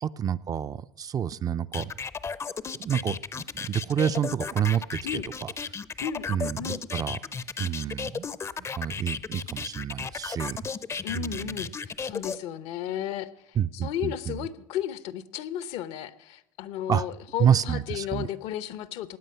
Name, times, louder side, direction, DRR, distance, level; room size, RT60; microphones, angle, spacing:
voice 1, 0.0-1.9 2.8-5.5 6.3-7.2 7.6-8.3 8.6-10.6 11.1-11.5 13.6-14.4 16.9-17.1 17.4-18.3, right 9 dB, 35° right, 13 dB, 0.5 m, -28 dB
sound 1, 1.7-12.4, left 5 dB, 25° left, 0.5 m, -34 dB
voice 2, 6.0-6.8 11.0-11.7 12.0-19.2, left 10 dB, 70° left, 14 dB, 0.8 m, -34 dB
17.0 x 9.3 x 5.6 m, 0.81 s
supercardioid pair, 85°, 11 cm